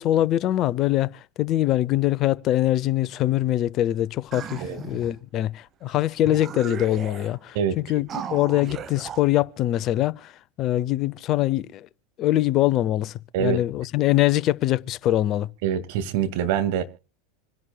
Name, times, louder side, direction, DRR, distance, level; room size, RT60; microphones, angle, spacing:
voice 1, 0.0-10.3 10.6-11.9 12.2-15.5, left 14 dB, 45° left, 0.7 m, -23 dB
sound 1, 4.3-5.2 5.9-6.0 6.2-7.4 8.1-9.2, right 7 dB, 35° right, 1.1 m, -36 dB
voice 2, 15.6-16.8, right 9 dB, 60° right, 2.0 m, -24 dB
27.0 x 11.0 x 2.3 m
hypercardioid pair, 85°, 0 cm